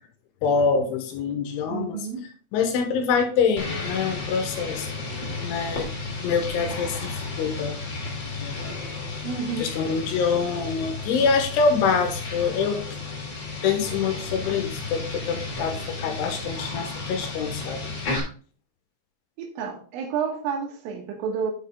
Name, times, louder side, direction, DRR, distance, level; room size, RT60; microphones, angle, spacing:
voice 1, 0.4-2.0 2.5-4.9 5.4-5.9 6.2-7.8 8.4-8.5 9.6-12.8 13.6-17.8, left 5 dB, 75° left, 3.3 m, -25 dB
voice 2, 1.7-2.3 9.2-9.9 19.4-21.5, right 6 dB, 75° right, 4.1 m, -30 dB
sound 1, 3.6-18.2, left 3 dB, 30° left, 2.5 m, -33 dB
8.4 x 6.5 x 3.6 m
omnidirectional pair, 5.9 m